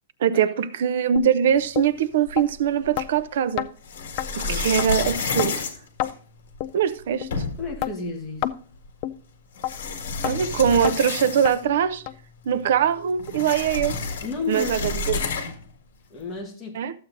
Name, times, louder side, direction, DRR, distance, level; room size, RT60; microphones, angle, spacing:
voice 1, 0.2-3.7 4.4-5.6 6.7-7.3 10.2-12.0 12.5-14.0 14.5-15.3 16.7-16.9, right 8 dB, 50° right, 0.5 m, -22 dB
sound 1, 1.2-1.3 1.8-1.9 2.4-2.5 3.0-3.1 3.6-3.7 4.2-4.3 4.8-4.9 5.4-5.5 6.0-6.1 6.6-6.7 7.2-7.3 7.8-7.9 8.4-8.6 9.0-9.2 9.6-9.7 10.2-10.4 10.8-11.0 11.5-11.6 12.1-12.2 12.7-12.8 13.3-13.4 13.9-14.0, left 13 dB, 30° left, 0.3 m, -28 dB
sound 2, 2.3-3.0 3.8-6.6 7.0-7.1 7.3-7.8 8.8-8.9 9.5-11.8 12.1-12.2 12.5-15.7, left 4 dB, 60° left, 1.7 m, -30 dB
voice 2, 7.6-8.5 14.2-14.8 16.1-16.8, left 4 dB, 10° left, 1.3 m, -32 dB
13.5 x 7.7 x 2.5 m
hypercardioid pair, 180°, 0 cm